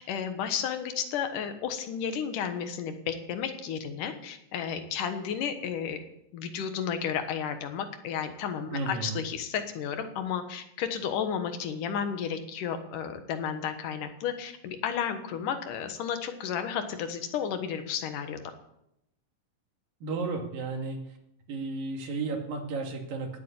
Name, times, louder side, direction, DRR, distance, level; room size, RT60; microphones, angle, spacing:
voice 1, 0.0-6.0 6.3-18.4, left 7 dB, 75° left, 8 dB, 2.8 m, -32 dB
voice 2, 8.7-9.2 20.0-21.0 21.5-23.4, right 3 dB, 90° right, 3 dB, 4.0 m, -33 dB
18.0 x 8.1 x 8.4 m, 0.83 s
omnidirectional pair, 3.9 m